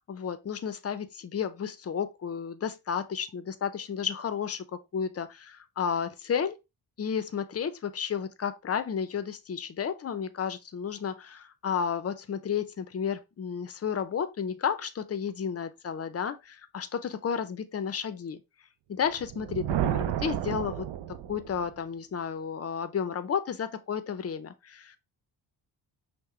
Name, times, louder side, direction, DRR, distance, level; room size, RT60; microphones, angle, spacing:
voice 1, 0.1-6.6 7.0-18.4 18.9-20.9 21.3-25.0, left 7 dB, 35° left, 0.5 m, -32 dB
Thunder, 19.1-21.7, right 11 dB, 75° right, 0.5 m, -31 dB
5.7 x 2.1 x 3.1 m
cardioid pair, 95°, 43 cm